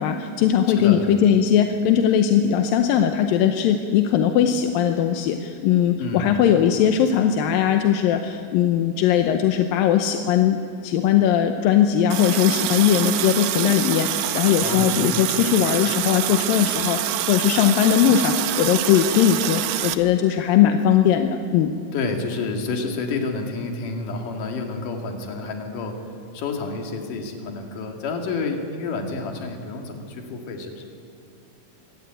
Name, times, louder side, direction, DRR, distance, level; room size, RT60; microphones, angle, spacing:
voice 1, 0.0-21.7, left 9 dB, 85° left, 6 dB, 2.6 m, -19 dB
voice 2, 0.8-1.1 6.0-6.3 14.6-15.1 21.9-26.0 26.3-30.9, left 3 dB, 65° left, 3 dB, 3.7 m, -29 dB
Water tap faucet, 12.1-19.9, right 13 dB, 85° right, 2.7 m, -26 dB
24.5 x 17.0 x 9.0 m, 2.4 s
omnidirectional pair, 4.1 m